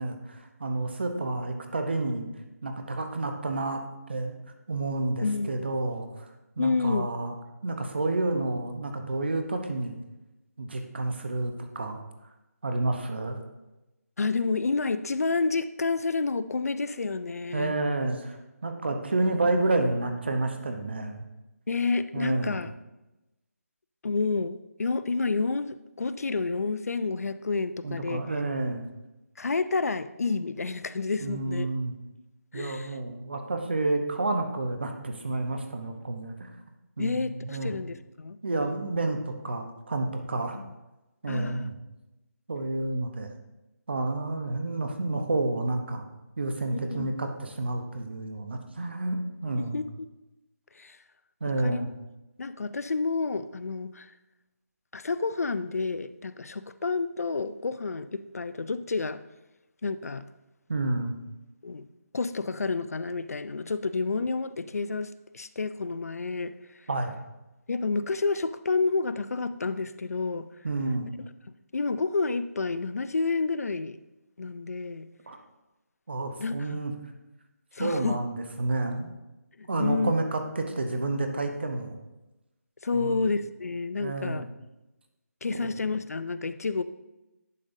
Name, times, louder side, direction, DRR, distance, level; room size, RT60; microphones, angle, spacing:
voice 1, 0.0-2.3 2.6-3.8 4.1-4.3 4.7-6.3 6.6-7.3 7.6-10.0 10.6-12.0 12.6-13.4 17.5-21.2 22.1-22.6 27.8-28.8 31.2-31.9 32.5-36.5 37.0-37.7 38.4-40.6 41.2-41.7 42.5-43.3 43.9-46.0 46.4-49.8 51.4-51.9 60.7-61.2 66.9-67.1 70.6-71.1 75.3-75.4 76.1-76.9 77.8-79.1 79.7-82.0 82.9-83.2 84.0-84.5 85.5-85.7, right 2 dB, 40° right, 5 dB, 0.8 m, -30 dB
voice 2, 5.2-5.7 6.6-7.1 14.2-17.7 21.7-22.7 24.0-28.2 29.4-31.7 32.5-32.9 37.0-38.4 40.5-40.6 41.3-41.7 46.7-47.1 49.6-50.1 50.8-51.0 51.6-51.9 52.4-54.1 54.9-59.2 59.8-60.3 61.6-61.9 62.1-66.5 67.7-70.5 71.7-74.0 74.4-75.1 76.4-76.8 77.7-78.2 79.6-80.1 82.8-84.5 85.4-86.8, left 4 dB, 65° left, 14 dB, 0.4 m, -29 dB
10.5 x 5.3 x 2.6 m, 1.0 s
figure-of-eight pair, 180°, 9 cm